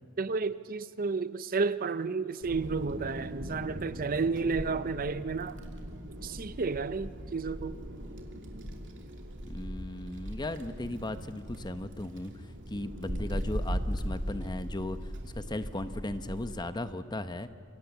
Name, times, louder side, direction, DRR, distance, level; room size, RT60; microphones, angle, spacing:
voice 1, 0.2-5.6 6.2-7.8, right 4 dB, 40° right, 0.6 m, -32 dB
Wind, 2.4-16.6, equal, 55° right, 2.7 m, -39 dB
voice 2, 9.4-17.5, left 1 dB, 20° left, 0.8 m, -37 dB
27.0 x 24.5 x 7.2 m
head